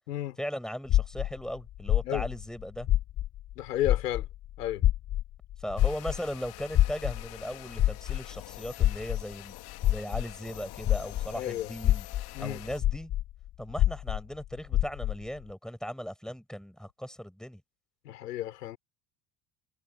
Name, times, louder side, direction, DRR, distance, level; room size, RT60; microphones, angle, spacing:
voice 1, 0.4-2.9 5.6-9.5 9.9-12.1 12.4-13.1 13.6-17.6, equal, ahead, 6.9 m, -38 dB
sound 1, 0.9-3.5 3.8-11.4 11.8-15.3, left 13 dB, 20° left, 0.3 m, -27 dB
voice 2, 3.6-4.3 4.6-4.8 11.3-11.7 12.3-12.6 18.0-18.8, left 13 dB, 70° left, 4.6 m, -32 dB
sound 2, 5.8-12.8, left 19 dB, 50° left, 2.6 m, -47 dB
figure-of-eight pair, 65°, 49 cm